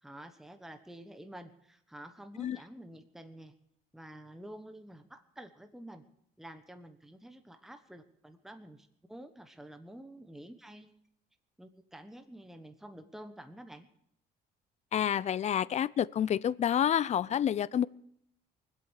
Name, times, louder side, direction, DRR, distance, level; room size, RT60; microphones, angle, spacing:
voice 1, 0.0-3.5 3.9-6.0 6.4-10.9 11.6-13.9, right 1 dB, ahead, 7 dB, 1.2 m, -49 dB
voice 2, 14.9-17.9, left 9 dB, 40° left, 20 dB, 0.5 m, -28 dB
24.0 x 8.2 x 6.5 m, 0.72 s
cardioid pair, 110°, 17 cm